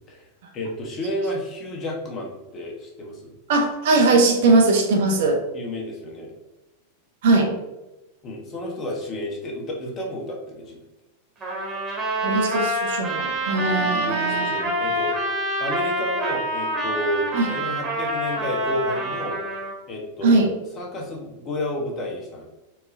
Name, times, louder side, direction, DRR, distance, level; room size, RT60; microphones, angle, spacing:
voice 1, 0.5-3.3 5.5-6.3 8.2-10.8 13.6-15.2 15.6-19.4 19.9-20.4 20.8-22.4, left 1 dB, 30° left, -1 dB, 0.9 m, -31 dB
voice 2, 3.5-5.4 7.2-7.5 12.2-14.6 17.3-17.5 20.2-20.5, right 3 dB, 55° right, 3 dB, 0.6 m, -20 dB
Trumpet, 11.4-19.7, right 1 dB, 20° right, 1.0 m, -26 dB
4.5 x 2.2 x 3.1 m, 0.99 s
figure-of-eight pair, 90°, 0 cm